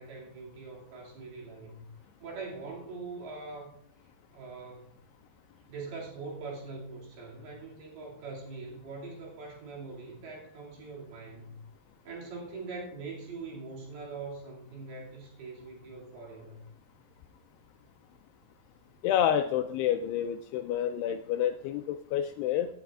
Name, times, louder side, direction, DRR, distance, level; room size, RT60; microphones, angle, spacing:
voice 1, 0.0-1.9 2.2-3.7 4.3-4.9 5.7-11.6 12.0-16.6, right 3 dB, 65° right, -3 dB, 4.3 m, -42 dB
voice 2, 19.0-22.7, left 10 dB, 85° left, 7 dB, 2.4 m, -29 dB
18.0 x 9.5 x 2.4 m, 0.71 s
omnidirectional pair, 5.1 m